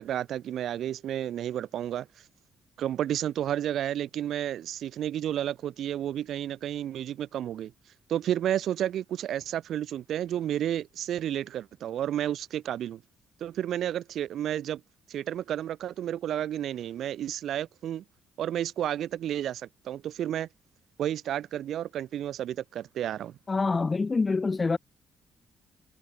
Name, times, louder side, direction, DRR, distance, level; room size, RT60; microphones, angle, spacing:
voice 1, 0.0-2.1 2.8-7.7 8.1-13.0 13.4-14.8 15.1-18.0 18.4-20.5 21.0-23.3, right 11 dB, 70° right, 7.5 m, -31 dB
voice 2, 23.5-24.8, left 4 dB, 30° left, 7.3 m, -26 dB
cardioid pair, 90°, 0 cm